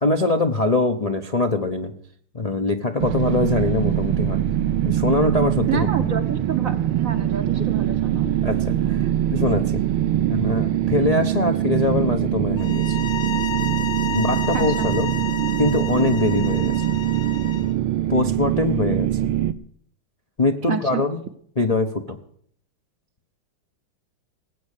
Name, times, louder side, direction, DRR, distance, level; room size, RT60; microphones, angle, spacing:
voice 1, 0.0-1.9 2.3-4.4 4.8-5.9 8.4-9.8 10.3-13.0 14.1-15.1 15.6-16.8 18.1-19.3 20.4-21.2 21.6-22.2, left 3 dB, 40° left, 4 dB, 0.5 m, -23 dB
sound 1, 3.0-19.5, right 12 dB, 90° right, 1.6 m, -23 dB
voice 2, 5.7-8.3 14.5-14.9 20.6-21.0, right 8 dB, 55° right, 8 dB, 1.0 m, -28 dB
sound 2, 12.6-17.7, left 7 dB, 60° left, 1.0 m, -32 dB
19.0 x 8.5 x 6.7 m, 0.63 s
omnidirectional pair, 2.3 m